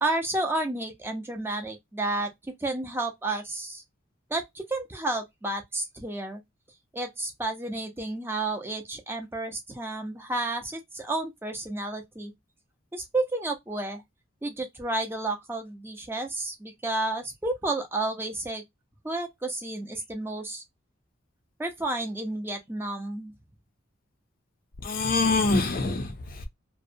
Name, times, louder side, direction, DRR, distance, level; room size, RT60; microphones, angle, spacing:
voice 1, 0.0-3.8 4.3-6.4 6.9-12.3 12.9-14.0 14.4-18.6 19.0-20.6 21.6-23.3, right 2 dB, 10° right, 0.5 m, -31 dB
voice 2, 24.8-26.5, left 3 dB, 45° left, 0.5 m, -25 dB
2.7 x 2.0 x 2.5 m
head